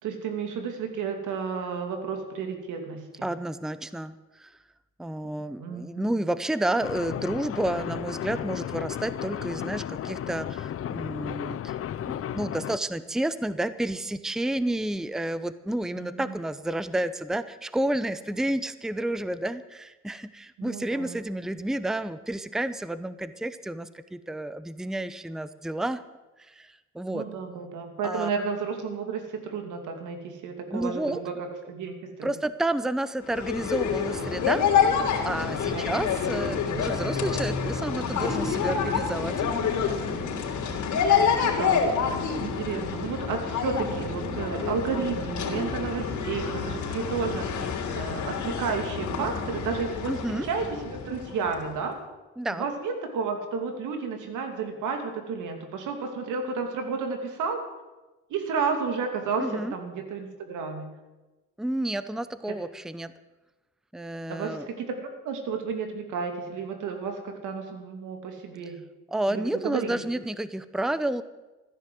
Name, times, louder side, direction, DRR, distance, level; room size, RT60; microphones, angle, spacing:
voice 1, 0.0-3.3 5.6-6.1 16.0-16.3 20.6-21.2 27.1-32.3 35.7-35.9 41.3-41.8 42.4-52.0 52.6-57.6 58.3-60.9 64.3-68.8 69.3-70.0, right 5 dB, 85° right, 5 dB, 2.7 m, -32 dB
voice 2, 3.2-4.6 5.0-11.8 12.0-26.0 26.4-27.2 28.0-28.3 30.7-31.2 32.2-34.6 35.2-39.4 50.1-50.5 52.4-52.7 59.4-59.7 61.6-63.1 63.9-64.7 69.1-71.2, right 1 dB, ahead, 14 dB, 0.7 m, -30 dB
sound 1, 6.8-12.8, left 10 dB, 50° left, 0.6 m, -34 dB
sound 2, 33.2-51.7, left 6 dB, 75° left, 3.4 m, -28 dB
15.0 x 10.5 x 7.8 m, 1.1 s
cardioid pair, 90°, 30 cm